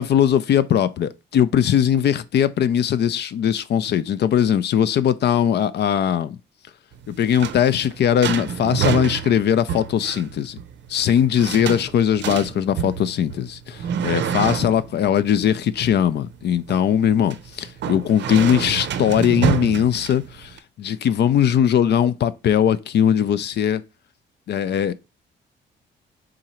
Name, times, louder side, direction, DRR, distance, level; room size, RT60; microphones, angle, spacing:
voice 1, 0.0-6.4 7.1-10.6 10.9-23.8 24.5-24.9, left 9 dB, 60° left, 0.5 m, -20 dB
sound 1, 6.9-20.6, right 8 dB, 65° right, 0.5 m, -28 dB
3.8 x 2.9 x 4.3 m
cardioid pair, 90°, 20 cm